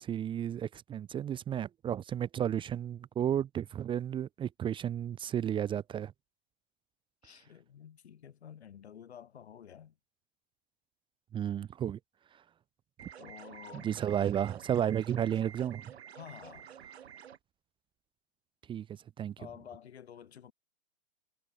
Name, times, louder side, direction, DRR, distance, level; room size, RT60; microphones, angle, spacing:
voice 1, 0.0-6.1 11.3-12.0 12.3-12.4 13.7-15.9 18.7-19.3, right 9 dB, 15° right, 0.9 m, -33 dB
voice 2, 7.2-9.9 13.2-13.9 16.1-16.7 19.4-20.5, left 9 dB, 75° left, 4.4 m, -50 dB
sound 1, 13.0-17.4, right 9 dB, 70° right, 7.7 m, -50 dB
hypercardioid pair, 135°, 33 cm